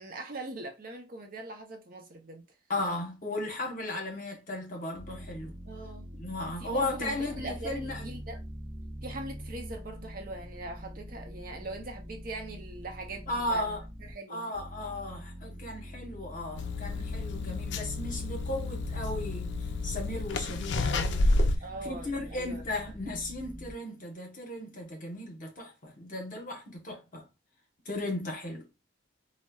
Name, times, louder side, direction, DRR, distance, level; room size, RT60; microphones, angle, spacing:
voice 1, 0.0-2.5 5.7-6.1 6.6-8.4 9.0-13.7 14.0-14.6 21.6-22.6, right 2 dB, 45° right, 0.6 m, -41 dB
voice 2, 2.7-5.5 6.1-8.1 13.3-13.8 14.3-19.5 19.8-21.3 21.8-27.3 27.9-28.7, left 1 dB, 45° left, 0.9 m, -36 dB
sound 1, 4.9-14.1 14.5-23.7, equal, ahead, 0.8 m, -43 dB
sound 2, 16.5-21.6, left 2 dB, 65° left, 0.4 m, -30 dB
4.0 x 2.1 x 2.3 m
head